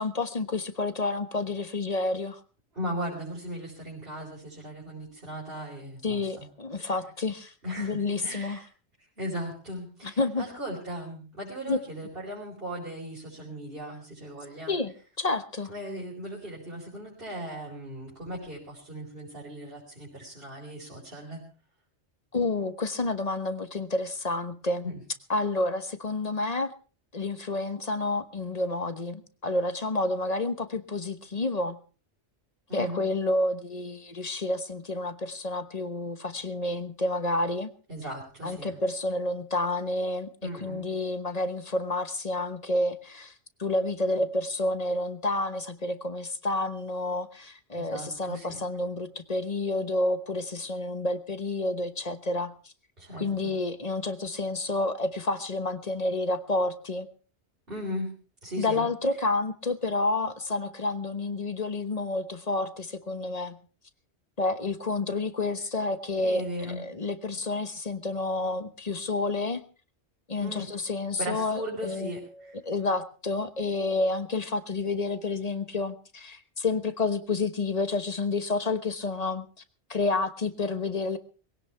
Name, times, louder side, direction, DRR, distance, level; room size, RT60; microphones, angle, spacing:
voice 1, 0.0-2.4 6.0-8.6 10.2-10.4 11.7-11.8 14.7-15.7 22.3-24.9 25.3-26.7 27.1-31.8 32.7-37.7 38.4-43.3 43.6-52.5 53.2-57.1 58.6-63.6 64.4-69.6 70.3-72.1 72.6-79.5 79.9-81.2, left 2 dB, 35° left, 10 dB, 1.2 m, -29 dB
voice 2, 2.7-6.5 6.8-6.9 7.6-8.7 9.0-14.8 15.7-21.4 24.8-25.0 32.7-33.0 37.9-38.8 40.4-40.9 47.7-48.6 53.0-53.6 57.7-58.1 58.4-58.9 66.2-66.8 70.4-70.7 71.2-72.6, equal, 55° right, -5 dB, 4.9 m, -37 dB
21.5 x 17.0 x 3.4 m, 0.37 s
omnidirectional pair, 1.1 m